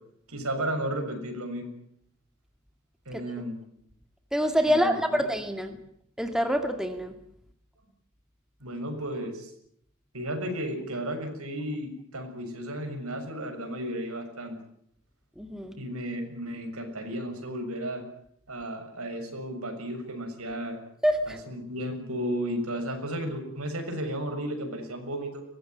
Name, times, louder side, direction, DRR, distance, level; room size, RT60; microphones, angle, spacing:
voice 1, 0.3-1.7 3.0-3.7 4.7-5.2 8.6-9.5 10.1-14.6 15.8-18.0 18.5-20.8 21.3-25.4, right 1 dB, 85° right, 5 dB, 6.8 m, -34 dB
voice 2, 4.3-5.7 6.2-7.1 15.4-15.7 21.0-21.4, equal, 5° right, 6 dB, 2.2 m, -26 dB
23.0 x 19.0 x 9.4 m, 0.70 s
head